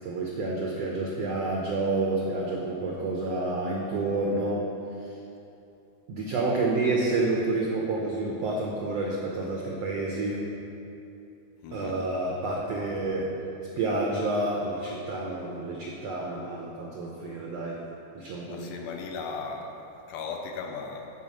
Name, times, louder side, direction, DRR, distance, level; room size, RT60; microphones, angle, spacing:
voice 1, 0.0-4.6 6.1-10.5 11.7-13.3 13.8-17.8 18.1-18.7, right 2 dB, 85° right, -2 dB, 1.4 m, -29 dB
voice 2, 11.6-12.0 18.5-21.1, left 4 dB, 75° left, 3 dB, 2.4 m, -37 dB
10.5 x 5.0 x 7.7 m, 2.8 s
omnidirectional pair, 4.2 m